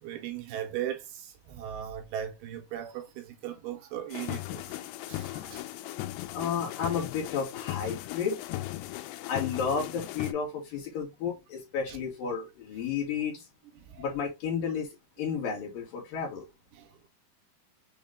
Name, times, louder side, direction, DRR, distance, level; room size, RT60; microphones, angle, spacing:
voice 1, 0.0-5.9 11.9-12.0 13.8-14.0 16.7-16.9, right 10 dB, 80° right, 2.5 m, -38 dB
sound 1, 4.1-10.3, left 16 dB, 85° left, 2.6 m, -37 dB
voice 2, 6.3-8.4 9.3-13.4 14.0-14.9 15.2-16.5, left 6 dB, 65° left, 2.6 m, -32 dB
6.5 x 2.3 x 3.5 m
omnidirectional pair, 4.7 m